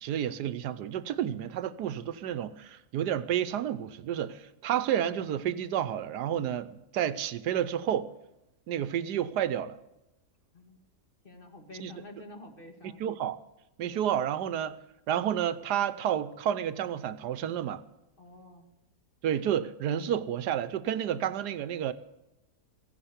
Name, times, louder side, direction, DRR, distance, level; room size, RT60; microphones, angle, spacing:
voice 1, 0.0-8.1 8.7-9.8 11.8-11.9 12.8-13.4 13.8-14.8 15.1-17.8 19.2-21.9, right 10 dB, 75° right, 1.3 m, -30 dB
voice 2, 11.2-13.0 18.2-18.7, left 1 dB, 30° left, 2.3 m, -48 dB
15.5 x 10.0 x 8.0 m
omnidirectional pair, 1.8 m